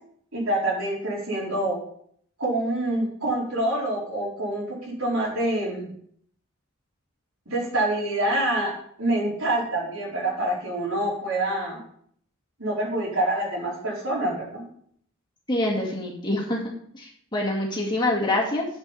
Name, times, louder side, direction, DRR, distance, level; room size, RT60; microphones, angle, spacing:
voice 1, 0.3-1.8 2.4-5.9 7.5-8.7 9.0-11.8 12.6-14.6, right 1 dB, 75° right, -4 dB, 4.5 m, -26 dB
voice 2, 15.5-16.6 16.9-18.7, left 1 dB, 20° left, -3 dB, 2.1 m, -25 dB
8.2 x 7.0 x 5.6 m, 0.64 s
head